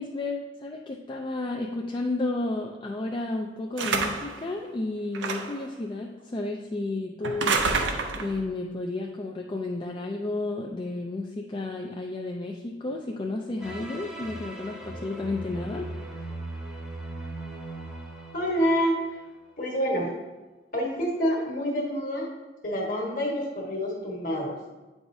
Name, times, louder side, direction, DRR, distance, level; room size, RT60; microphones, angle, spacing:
voice 1, 0.0-7.8 8.2-15.9 16.2-16.3, left 2 dB, 25° left, 0 dB, 0.3 m, -32 dB
sound 1, 3.8-4.4 5.1-5.7 7.2-8.4, right 4 dB, 90° right, 0.6 m, -27 dB
sound 2, 13.6-19.4, right 2 dB, ahead, 0.8 m, -39 dB
voice 2, 18.3-19.0 19.6-20.1 20.7-22.3 22.6-24.6, equal, 50° left, -2 dB, 1.4 m, -27 dB
8.3 x 4.7 x 2.7 m, 1.2 s
head